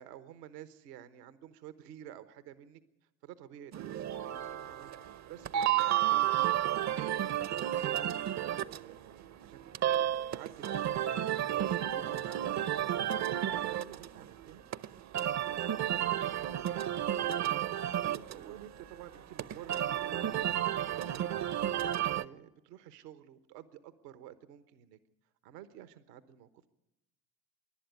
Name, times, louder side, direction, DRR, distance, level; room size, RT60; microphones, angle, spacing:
voice 1, 0.0-4.9 5.3-8.4 8.8-14.7 15.2-25.0 25.4-26.6, right 10 dB, 80° right, 13 dB, 1.2 m, -52 dB
sound 1, 3.7-22.2, right 11 dB, 35° right, 0.7 m, -32 dB
25.5 x 11.5 x 9.4 m, 0.92 s
hypercardioid pair, 65°, 48 cm